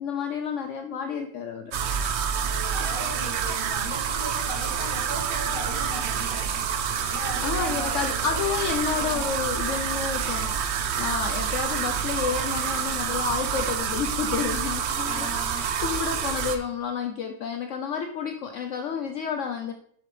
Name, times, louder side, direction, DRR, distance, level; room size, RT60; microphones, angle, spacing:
voice 1, 0.0-1.7 7.4-19.7, left 7 dB, 75° left, 5 dB, 0.7 m, -30 dB
sound 1, 1.7-16.6, right 7 dB, 80° right, 0.6 m, -28 dB
voice 2, 2.4-9.2 11.0-11.5 15.1-15.7, equal, 15° right, -4 dB, 2.4 m, -38 dB
7.5 x 6.6 x 3.2 m, 0.67 s
omnidirectional pair, 1.8 m